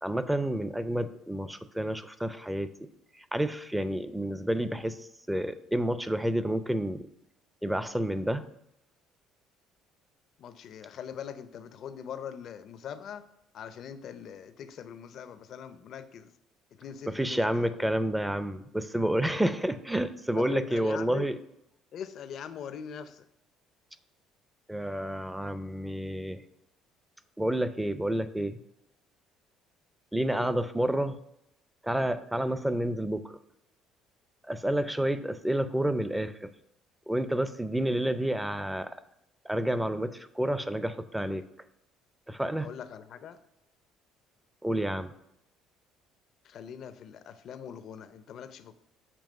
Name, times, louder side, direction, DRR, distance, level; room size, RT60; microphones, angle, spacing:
voice 1, 0.0-2.9 3.3-5.0 5.3-7.1 7.6-8.4 17.1-21.4 24.7-26.4 27.4-28.6 30.1-31.2 31.8-33.4 34.4-36.5 37.1-39.0 39.5-41.4 42.3-42.7 44.6-45.1, right 1 dB, 5° right, 12 dB, 0.5 m, -29 dB
voice 2, 10.4-13.2 13.5-16.3 16.7-17.7 19.4-19.5 20.4-21.3 21.9-23.2 30.3-30.6 42.6-43.4 46.4-48.7, left 8 dB, 60° left, 11 dB, 0.5 m, -42 dB
6.9 x 3.0 x 5.3 m, 0.80 s
supercardioid pair, 75°, 0 cm